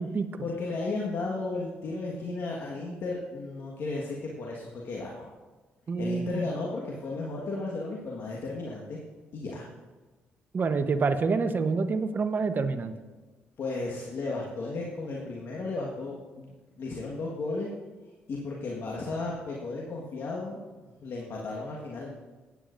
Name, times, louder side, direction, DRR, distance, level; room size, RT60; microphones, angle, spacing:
voice 1, 0.4-5.3 6.0-9.0 9.3-9.7 13.6-17.7 18.3-22.1, left 3 dB, 65° left, -3 dB, 1.5 m, -34 dB
voice 2, 5.9-6.5 10.5-12.9, right 4 dB, 45° right, 9 dB, 0.9 m, -27 dB
16.5 x 9.0 x 2.6 m, 1.2 s
supercardioid pair, 60°, 4 cm